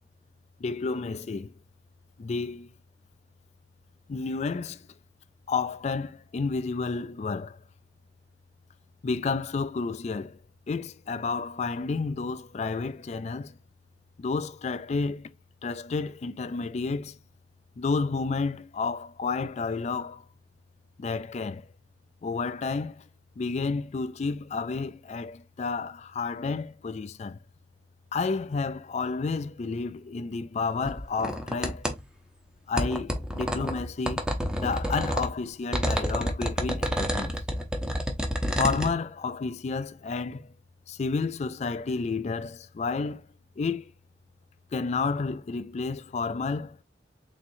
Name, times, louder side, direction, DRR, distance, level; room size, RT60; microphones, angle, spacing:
voice 1, 0.6-1.5 2.2-2.7 4.1-4.9 5.5-7.6 9.0-10.4 10.7-13.6 14.2-15.3 15.6-17.2 17.8-20.2 21.0-21.7 22.2-23.0 23.4-27.4 28.1-31.9 32.7-34.2 34.6-37.4 38.6-40.5 40.9-43.3 43.6-43.9 44.7-46.8, left 4 dB, 40° left, 0.3 m, -31 dB
sound 1, 30.8-32.0 32.8-35.3 35.7-38.9, equal, 5° right, 0.7 m, -29 dB
4.2 x 3.6 x 2.6 m
head